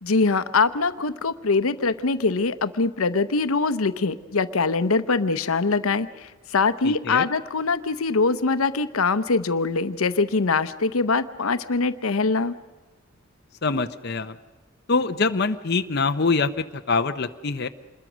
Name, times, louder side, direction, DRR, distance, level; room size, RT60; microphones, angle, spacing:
voice 1, 0.0-12.5, left 4 dB, 90° left, 13 dB, 0.8 m, -23 dB
voice 2, 6.8-7.3 13.6-14.3 14.9-17.7, left 4 dB, 50° left, 8 dB, 0.7 m, -24 dB
27.0 x 21.5 x 6.2 m, 1.2 s
head